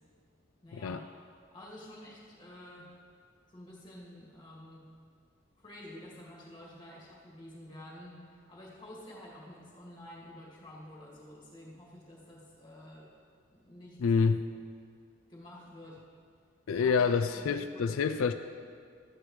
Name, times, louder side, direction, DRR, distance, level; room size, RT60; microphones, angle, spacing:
voice 1, 0.6-1.0 1.5-3.0 3.5-4.9 5.6-13.1 13.5-14.4 15.3-16.0 16.7-17.0 17.3-18.0, left 1 dB, 20° left, -5 dB, 2.2 m, -50 dB
voice 2, 14.0-14.4 16.7-18.3, left 5 dB, 90° left, 9 dB, 0.4 m, -27 dB
13.5 x 9.5 x 3.2 m, 2.1 s
head